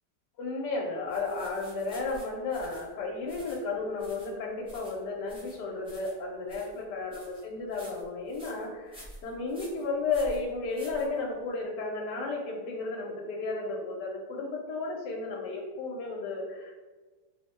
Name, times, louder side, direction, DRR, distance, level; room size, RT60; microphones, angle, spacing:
voice 1, 0.4-16.7, left 3 dB, 85° left, -1 dB, 1.2 m, -33 dB
sound 1, 1.1-11.6, equal, 5° right, 0.7 m, -50 dB
3.2 x 2.1 x 4.0 m, 1.3 s
omnidirectional pair, 1.8 m